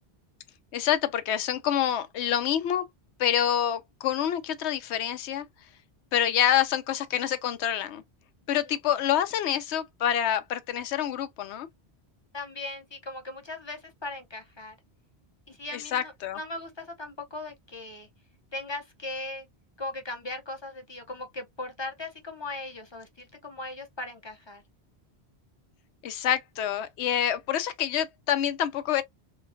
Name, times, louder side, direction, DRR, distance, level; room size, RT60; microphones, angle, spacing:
voice 1, 0.7-2.8 3.2-5.5 6.1-8.0 8.5-11.7 15.7-16.4 26.0-29.0, left 10 dB, 85° left, 0.9 m, -27 dB
voice 2, 12.3-14.8 15.5-18.1 18.5-19.5 19.8-24.6, left 2 dB, 30° left, 0.6 m, -38 dB
3.0 x 2.4 x 2.4 m
omnidirectional pair, 1.1 m